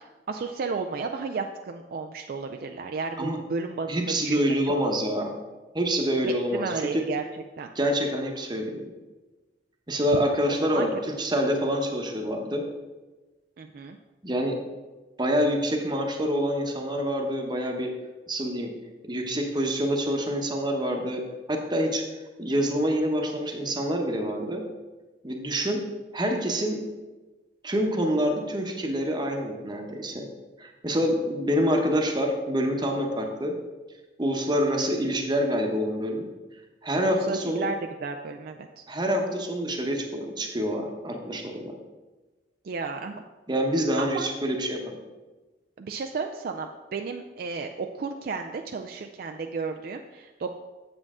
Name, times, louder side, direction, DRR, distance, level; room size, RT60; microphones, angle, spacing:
voice 1, 0.3-4.8 6.2-7.2 7.6-7.7 10.4-10.9 13.6-14.0 37.0-38.8 42.6-43.2 44.0-44.3 45.8-50.5, right 4 dB, 55° right, 4 dB, 0.4 m, -33 dB
voice 2, 3.9-5.3 5.7-7.0 7.7-8.8 9.9-12.6 14.2-14.6 15.2-17.9 18.3-18.7 19.0-21.2 21.5-22.0 22.4-24.6 25.2-25.8 26.1-26.8 27.6-30.3 30.6-33.6 34.2-36.3 36.8-37.7 38.9-41.7 43.5-45.0, equal, 25° right, 3 dB, 0.9 m, -26 dB
7.6 x 7.4 x 3.6 m, 1.2 s
head